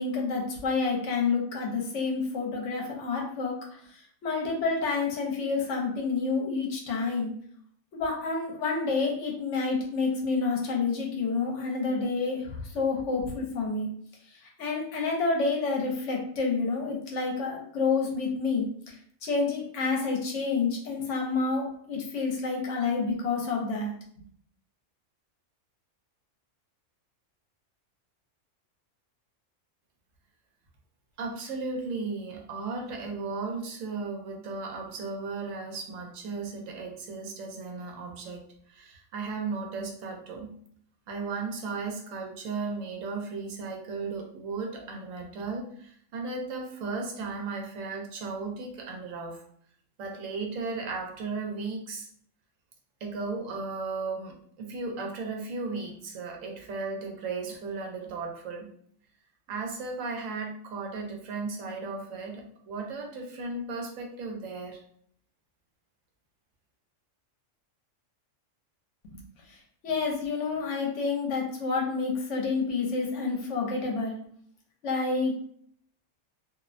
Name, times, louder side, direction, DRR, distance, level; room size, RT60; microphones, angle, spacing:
voice 1, 0.0-3.6 3.9-7.3 7.9-13.9 14.3-18.9 19.2-23.9 69.1-69.2 69.5-69.6 69.8-74.2 74.8-75.3, left 4 dB, 70° left, 0 dB, 0.9 m, -29 dB
voice 2, 31.2-40.6 41.1-49.4 50.0-52.1 53.0-58.7 59.5-64.8, right 4 dB, 85° right, 2 dB, 1.0 m, -35 dB
2.6 x 2.0 x 2.5 m, 0.63 s
omnidirectional pair, 1.3 m